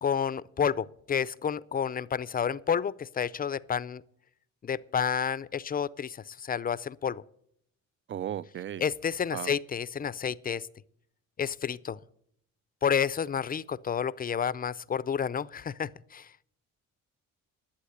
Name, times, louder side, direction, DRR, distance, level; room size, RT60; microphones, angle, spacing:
voice 1, 0.0-4.0 4.6-7.2 8.8-10.7 11.4-12.0 12.8-16.5, left 7 dB, 30° left, 0.5 m, -30 dB
voice 2, 8.1-8.9 9.3-9.6, right 10 dB, 40° right, 0.4 m, -35 dB
11.5 x 8.1 x 8.0 m
cardioid pair, 90°, 30 cm